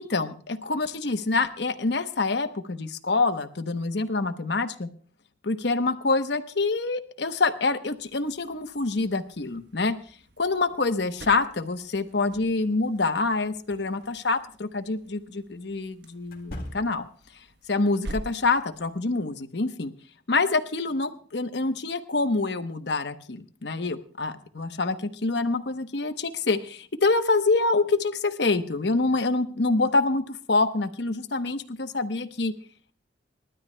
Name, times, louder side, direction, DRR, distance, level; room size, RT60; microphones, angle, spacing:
voice 1, 0.0-4.9 5.4-9.9 10.4-17.1 17.7-19.9 20.3-25.0 25.2-32.5, left 3 dB, 70° left, 9 dB, 1.0 m, -26 dB
sound 1, 7.9-19.1, right 1 dB, 65° right, 1.1 m, -47 dB
sound 2, 14.0-14.2 16.2-17.3, left 1 dB, 50° left, 1.9 m, -40 dB
28.0 x 12.5 x 2.2 m, 0.43 s
head